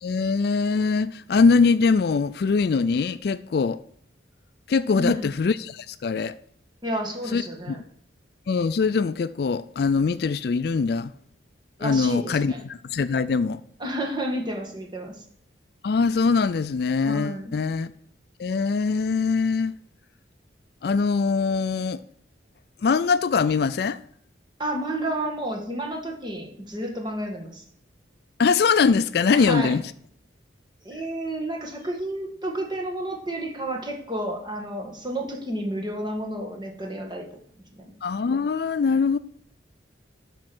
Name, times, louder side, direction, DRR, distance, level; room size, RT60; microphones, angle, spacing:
voice 1, 0.0-3.8 4.7-6.4 7.3-7.4 7.7-7.8 8.5-11.1 11.8-13.6 15.8-17.9 18.4-19.7 20.8-22.0 22.8-24.0 28.4-29.8 38.0-39.2, left 5 dB, 55° left, 0.3 m, -22 dB
voice 2, 4.9-5.3 6.8-7.8 11.8-12.6 13.8-15.2 17.0-17.5 24.6-27.6 29.3-29.8 30.8-37.3 37.7-37.9, right 1 dB, 25° right, 1.8 m, -31 dB
12.0 x 5.4 x 6.1 m
head